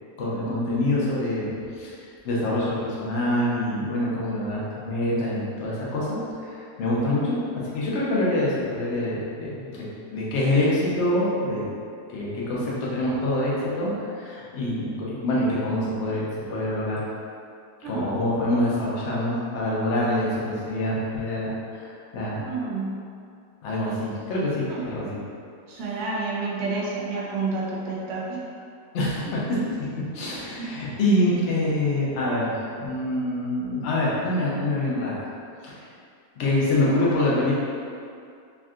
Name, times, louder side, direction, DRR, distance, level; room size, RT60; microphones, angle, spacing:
voice 1, 0.2-1.9 2.2-11.7 12.1-17.0 17.8-22.4 23.6-25.2 28.9-29.9 30.1-32.5 32.8-35.3 35.6-35.8 36.4-37.6, left 1 dB, 60° left, -6 dB, 0.9 m, -25 dB
voice 2, 22.4-23.0 24.7-24.9 25.7-28.4 30.6-30.7, right 3 dB, 65° right, -4 dB, 0.8 m, -29 dB
3.5 x 2.6 x 2.3 m, 2.4 s
omnidirectional pair, 1.4 m